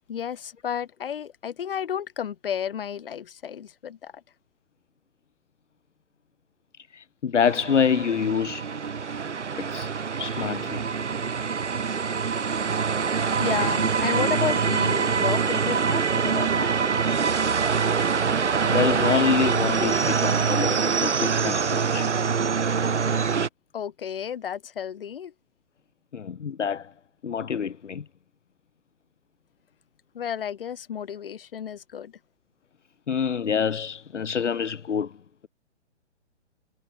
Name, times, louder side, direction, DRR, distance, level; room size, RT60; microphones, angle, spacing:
voice 1, 0.1-4.2 13.4-16.7 23.7-25.3 30.1-32.2, left 8 dB, 50° left, 3.5 m, -32 dB
voice 2, 6.9-8.7 9.6-9.9 10.2-10.8 18.0-18.1 18.6-22.1 26.1-26.9 27.2-28.0 33.1-35.1, left 7 dB, 85° left, 0.6 m, -26 dB
sound 1, 7.4-23.5, right 6 dB, 75° right, 1.0 m, -24 dB
figure-of-eight pair, 125°, 35 cm